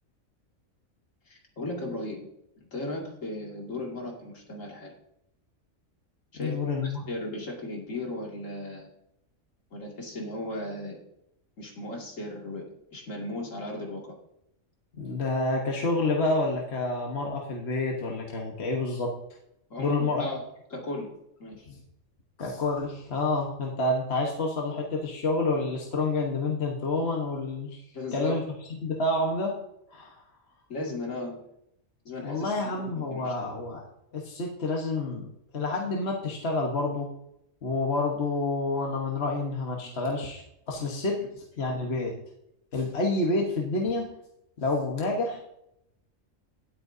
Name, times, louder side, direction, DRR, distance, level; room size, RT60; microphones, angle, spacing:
voice 1, 1.3-2.3 2.6-4.9 6.3-8.9 9.7-11.0 11.6-12.6 12.9-14.1 19.7-20.4 20.7-21.1 21.4-21.7 27.9-28.4 30.7-31.4 32.0-33.5 41.2-41.3, left 2 dB, 75° left, -1 dB, 2.7 m, -36 dB
voice 2, 6.3-7.0 15.0-19.1 19.8-20.3 22.4-27.8 28.1-28.4 28.7-29.6 29.9-30.2 32.2-33.8 34.1-35.3 35.5-37.1 37.6-42.2 42.7-44.1 44.6-45.4, left 2 dB, 55° left, 0 dB, 1.5 m, -28 dB
17.5 x 8.7 x 2.7 m, 0.80 s
omnidirectional pair, 1.4 m